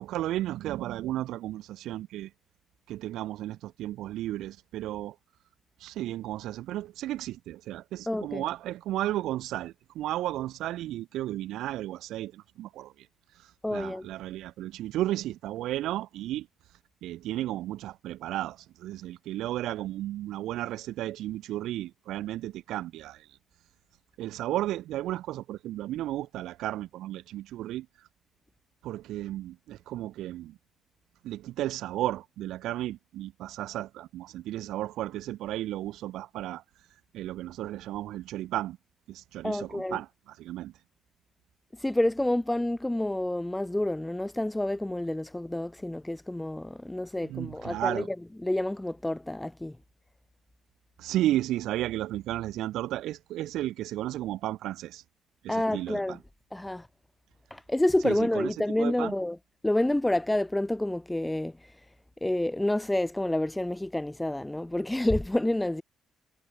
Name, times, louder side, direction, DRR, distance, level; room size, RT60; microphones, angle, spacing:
voice 1, 0.0-2.3 2.9-5.1 5.8-13.1 13.7-16.5 17.0-23.3 24.2-27.9 28.8-30.6 31.2-36.6 37.1-38.8 39.1-40.7 47.2-48.1 51.0-55.0 55.4-56.2 58.0-59.1, right 14 dB, 85° right, 1.5 m, -33 dB
voice 2, 8.1-8.4 13.6-14.1 39.4-40.0 41.7-49.8 55.5-56.2 56.5-56.9 57.5-59.4 59.6-61.6 62.2-65.8, left 1 dB, 10° left, 0.4 m, -28 dB
cardioid pair, 90°, 0 cm